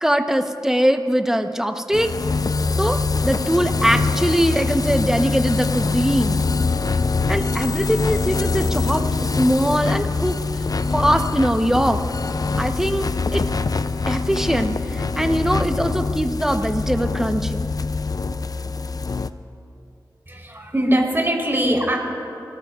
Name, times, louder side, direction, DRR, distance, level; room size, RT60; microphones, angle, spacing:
voice 1, 0.0-2.1 2.7-6.4 7.3-10.4 10.9-12.0 12.6-13.4 14.1-17.7, equal, 5° right, 6 dB, 1.0 m, -21 dB
sound 1, 1.9-19.3, left 4 dB, 50° left, 0.5 m, -24 dB
voice 2, 20.3-22.0, right 1 dB, 30° right, -1 dB, 3.8 m, -21 dB
27.0 x 17.5 x 2.5 m, 2.8 s
cardioid pair, 45°, 8 cm